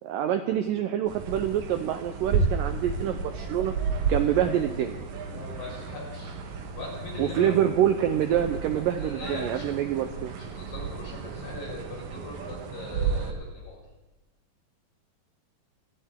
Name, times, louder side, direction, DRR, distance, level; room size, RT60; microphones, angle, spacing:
voice 1, 0.0-3.7 4.1-5.0 7.2-10.3, right 10 dB, 80° right, 8 dB, 2.0 m, -26 dB
sound 1, 1.1-13.3, right 5 dB, 60° right, 2.2 m, -33 dB
sound 2, 2.3-10.0, right 1 dB, 45° right, 2.2 m, -44 dB
voice 2, 5.3-7.5 8.8-9.7 10.4-13.8, left 2 dB, 60° left, -3 dB, 6.8 m, -40 dB
29.5 x 11.5 x 3.7 m, 1.1 s
omnidirectional pair, 4.6 m